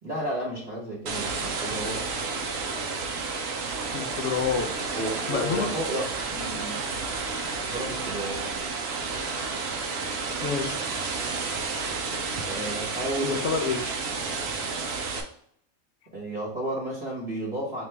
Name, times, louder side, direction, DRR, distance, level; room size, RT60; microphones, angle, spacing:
voice 1, 0.0-2.1 4.9-6.9 7.7-8.5 12.3-13.6 16.1-17.8, right 1 dB, 35° right, -5 dB, 1.3 m, -33 dB
sound 1, 1.1-15.2, right 4 dB, 60° right, 0.8 m, -31 dB
voice 2, 3.9-4.8 5.3-5.7 10.4-10.8 13.2-13.8, left 6 dB, 65° left, 4 dB, 0.9 m, -28 dB
4.4 x 2.9 x 3.3 m, 0.66 s
omnidirectional pair, 1.4 m